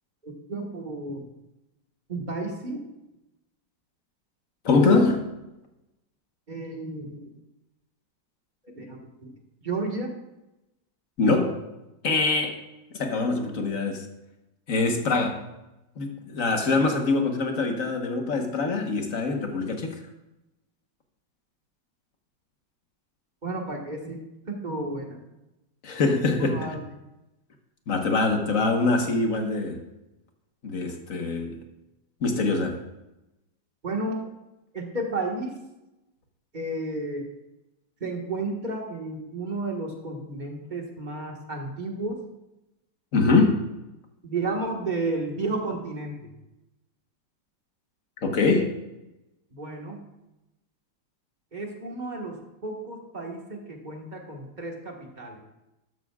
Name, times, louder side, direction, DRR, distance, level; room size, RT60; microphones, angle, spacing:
voice 1, 0.2-1.2 2.1-2.8 6.5-7.2 8.7-9.3 9.6-10.1 23.4-24.2 24.5-25.2 26.4-26.8 33.8-34.2 34.7-35.5 36.5-37.2 38.0-42.2 44.2-46.3 49.5-50.0 51.5-55.4, right 2 dB, 25° right, 1 dB, 1.6 m, -32 dB
voice 2, 4.6-5.3 11.2-11.6 12.0-12.6 13.0-14.1 14.7-15.4 16.0-20.0 25.8-26.7 27.9-29.8 30.6-31.6 32.2-32.8 43.1-43.6 48.2-48.8, left 3 dB, 50° left, 3 dB, 1.6 m, -23 dB
12.5 x 12.0 x 2.4 m, 0.95 s
omnidirectional pair, 1.9 m